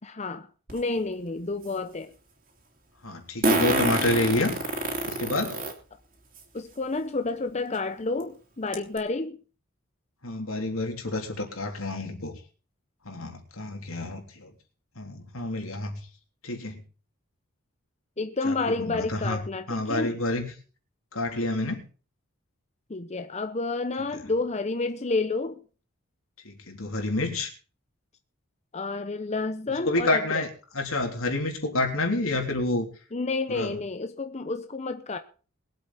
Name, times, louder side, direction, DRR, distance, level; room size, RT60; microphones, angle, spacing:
voice 1, 0.0-2.1 6.5-9.4 18.2-20.2 22.9-25.6 28.7-30.5 33.1-35.2, left 3 dB, 30° left, 0.7 m, -30 dB
Fart, 0.7-0.8 3.4-5.7 6.4-6.5 7.7-7.8 8.2-8.3 8.7-9.0, right 2 dB, 40° right, 3.1 m, -26 dB
voice 2, 3.0-4.6 5.0-5.6 10.2-12.4 13.0-14.5 14.9-16.0 16.4-16.8 18.4-19.4 19.7-20.5 21.1-21.8 26.4-27.5 29.9-30.5 30.7-32.9 33.5-33.7, left 2 dB, 85° left, 3.3 m, -28 dB
22.0 x 8.1 x 4.2 m
head